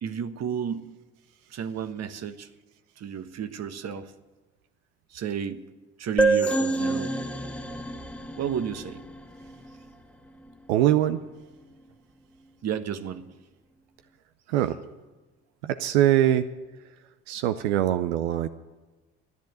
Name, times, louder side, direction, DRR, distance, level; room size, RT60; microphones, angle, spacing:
voice 1, 0.0-0.8 1.5-2.5 3.0-4.1 5.1-5.6 6.0-7.1 8.4-9.0 12.6-13.2, right 8 dB, 55° right, 10 dB, 1.2 m, -32 dB
sound 1, 6.2-9.7, right 2 dB, 5° left, 1.6 m, -27 dB
voice 2, 10.7-11.2 14.5-14.8 15.6-16.5 17.3-18.5, right 12 dB, 85° right, 11 dB, 0.6 m, -22 dB
13.5 x 10.5 x 7.9 m, 1.2 s
hypercardioid pair, 55°, 32 cm